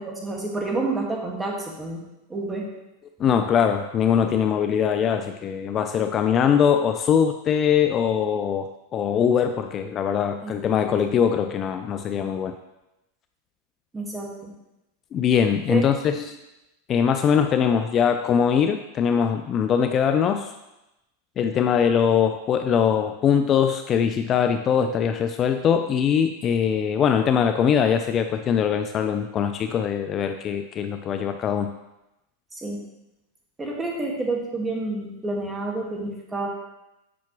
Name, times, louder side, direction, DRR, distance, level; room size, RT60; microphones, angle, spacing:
voice 1, 0.0-2.0 2.3-2.7 10.4-10.5 10.8-10.9 13.9-14.5 15.7-15.8 16.1-16.2 32.5-32.8 33.6-36.5, right 2 dB, 15° right, -1 dB, 1.8 m, -29 dB
voice 2, 3.2-12.6 15.1-16.3 16.9-20.5 21.4-31.7, left 7 dB, 35° left, 8 dB, 0.4 m, -22 dB
8.3 x 5.7 x 3.1 m, 0.93 s
hypercardioid pair, 110°, 0 cm